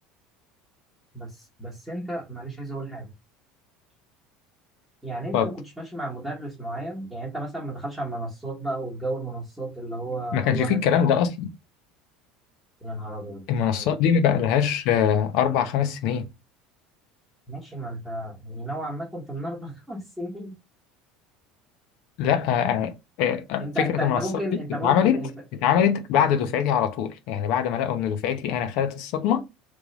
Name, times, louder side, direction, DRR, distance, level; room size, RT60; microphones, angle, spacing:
voice 1, 1.1-3.1 5.0-10.8 12.8-13.4 13.7-13.9 17.5-20.5 23.6-25.4, right 1 dB, ahead, 1.2 m, -33 dB
voice 2, 10.3-11.5 13.5-16.3 22.2-24.3 24.8-25.2 25.6-29.4, left 8 dB, 60° left, 0.8 m, -23 dB
3.4 x 3.2 x 4.0 m
cardioid pair, 160°, 0 cm